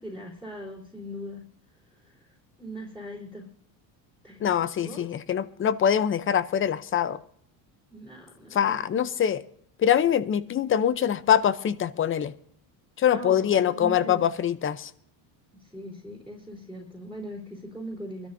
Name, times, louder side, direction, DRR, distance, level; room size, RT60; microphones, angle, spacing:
voice 1, 0.0-1.4 1.9-3.5 4.2-5.2 7.9-8.8 13.1-14.3 15.6-18.3, equal, ahead, -2 dB, 3.7 m, -40 dB
voice 2, 4.4-7.2 8.5-9.4 9.8-12.3 13.0-14.9, left 9 dB, 25° left, 16 dB, 0.6 m, -24 dB
24.5 x 13.0 x 2.6 m, 0.66 s
cardioid pair, 115°, 47 cm